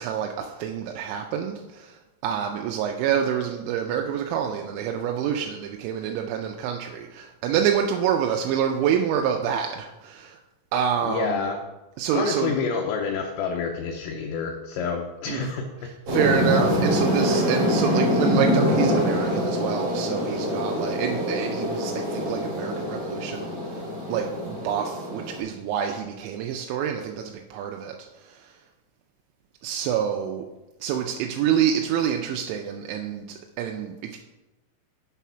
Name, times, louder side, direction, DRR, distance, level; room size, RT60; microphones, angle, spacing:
voice 1, 0.0-10.4 10.7-11.5 12.0-12.6 15.3-15.5 15.8-23.5 24.1-28.5 29.6-30.4 30.8-34.2, right 8 dB, 85° right, 3 dB, 2.7 m, -27 dB
voice 2, 11.0-11.6 12.1-15.7, left 5 dB, 80° left, 2 dB, 2.6 m, -28 dB
sound 1, 16.1-25.4, equal, 40° right, 2.1 m, -25 dB
8.3 x 4.1 x 5.6 m, 1.1 s
omnidirectional pair, 5.7 m